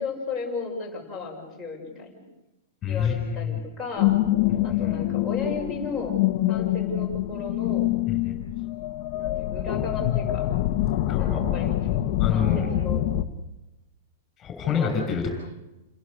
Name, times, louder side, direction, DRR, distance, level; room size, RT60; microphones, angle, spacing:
voice 1, 0.0-2.3 2.8-4.2 4.6-6.2 6.5-7.9 9.2-10.5 11.2-13.0 14.7-15.3, left 3 dB, ahead, 0 dB, 6.4 m, -35 dB
voice 2, 2.8-3.6 4.8-5.0 8.1-8.4 11.0-11.4 12.2-12.7 14.4-15.3, left 7 dB, 15° left, 3 dB, 6.2 m, -27 dB
sound 1, 4.0-13.2, left 14 dB, 35° left, 1.4 m, -25 dB
29.5 x 22.0 x 6.7 m, 0.99 s
supercardioid pair, 180°, 0 cm